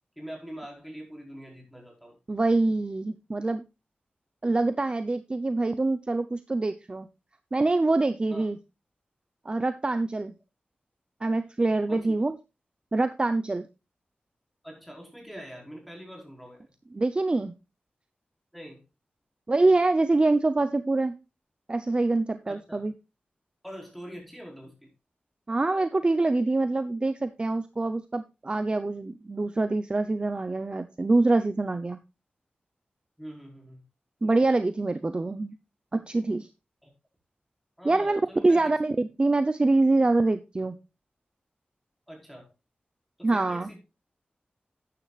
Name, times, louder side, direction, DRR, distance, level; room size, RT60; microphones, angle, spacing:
voice 1, 0.2-2.2 8.3-8.5 11.9-12.2 14.6-16.7 18.5-18.8 22.5-22.9 23.6-24.9 33.2-33.8 36.8-36.9 37.8-38.8 42.1-42.5 43.2-43.8, equal, ahead, 0 dB, 4.9 m, -43 dB
voice 2, 2.3-3.6 4.4-7.1 7.5-8.6 9.4-10.3 11.2-12.4 12.9-13.6 16.9-17.5 19.5-21.2 21.7-22.9 25.5-32.0 34.2-35.5 35.9-36.5 37.8-40.8 43.2-43.7, right 2 dB, 30° right, 10 dB, 0.7 m, -25 dB
12.5 x 9.8 x 2.4 m, 0.27 s
wide cardioid pair, 105°, 3 cm